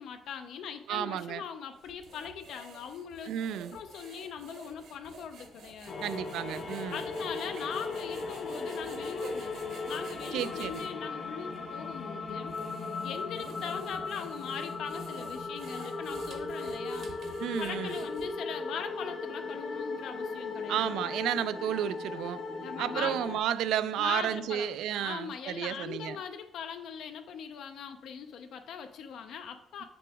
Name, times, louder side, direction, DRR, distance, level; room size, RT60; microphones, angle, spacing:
voice 1, 0.0-3.3 3.7-6.1 6.9-12.6 13.0-17.1 17.6-20.9 22.6-23.2 24.0-24.7 24.9-29.8, left 7 dB, 65° left, 7 dB, 0.4 m, -40 dB
voice 2, 0.9-1.4 3.2-3.8 6.0-7.0 10.3-10.7 17.4-17.9 20.7-22.4 22.8-26.2, right 10 dB, 75° right, 15 dB, 0.3 m, -32 dB
sound 1, 1.8-10.9 11.5-11.6 12.3-18.5, right 3 dB, 60° right, 1.2 m, -50 dB
sound 2, 5.9-23.4, left 3 dB, 40° left, 0.7 m, -37 dB
6.0 x 6.0 x 3.5 m, 0.84 s
cardioid pair, 155°, 0 cm